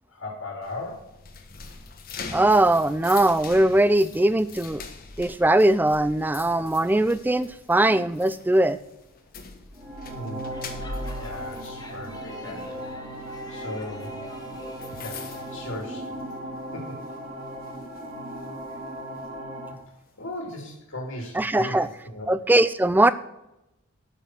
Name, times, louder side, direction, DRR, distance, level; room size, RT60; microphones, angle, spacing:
voice 1, 0.1-1.0 10.1-10.5 11.2-12.8 13.1-14.1 15.0-15.2 15.5-16.0 16.7-17.0 18.7-18.8 20.2-22.3, left 1 dB, 65° left, 0 dB, 2.5 m, -37 dB
sound 1, 0.6-16.5 16.9-17.2 17.6-19.3, left 4 dB, 40° left, 1.2 m, -42 dB
voice 2, 2.3-4.8 5.2-8.8 21.3-21.9 22.3-23.1, right 1 dB, 10° right, 15 dB, 0.3 m, -20 dB
sound 2, 9.7-19.7, right 1 dB, 30° right, 3.3 m, -37 dB
Speech / Shout / Subway metro underground, 10.5-15.7, left 2 dB, 15° left, 1.1 m, -46 dB
12.0 x 5.7 x 5.9 m, 0.91 s
head